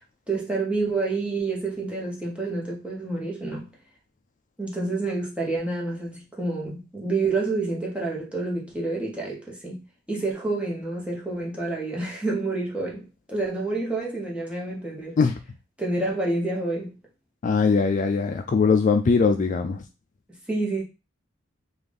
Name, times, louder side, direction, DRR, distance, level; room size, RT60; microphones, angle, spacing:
voice 1, 0.3-3.7 4.6-9.8 10.1-15.2 15.8-16.9 20.5-20.8, right 3 dB, 5° right, 1.1 m, -28 dB
voice 2, 17.4-19.8, left 5 dB, 40° left, 0.3 m, -21 dB
3.8 x 2.5 x 3.4 m
head